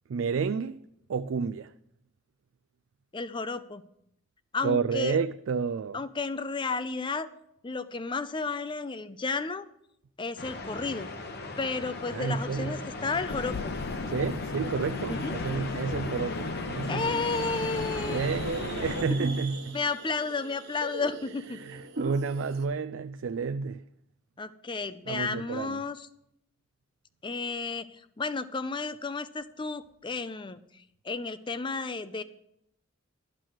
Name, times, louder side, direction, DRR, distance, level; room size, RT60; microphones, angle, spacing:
voice 1, 0.1-0.8 1.1-1.7 4.6-6.0 12.1-12.8 14.1-17.2 18.1-19.8 21.6-23.8 25.1-25.8, right 5 dB, 70° right, 0.4 m, -30 dB
voice 2, 3.1-3.8 4.5-5.2 5.9-7.3 7.6-9.7 10.2-11.1 11.6-13.7 15.1-15.3 16.9-18.3 19.7-21.6 24.4-26.1 27.2-30.6 31.0-32.2, left 4 dB, 25° left, 0.5 m, -32 dB
sound 1, 10.4-19.0, left 2 dB, 50° left, 1.1 m, -38 dB
sound 2, 13.3-19.5, left 4 dB, 70° left, 0.5 m, -36 dB
sound 3, 17.0-22.6, right 2 dB, 55° right, 1.4 m, -40 dB
12.5 x 6.1 x 6.4 m
head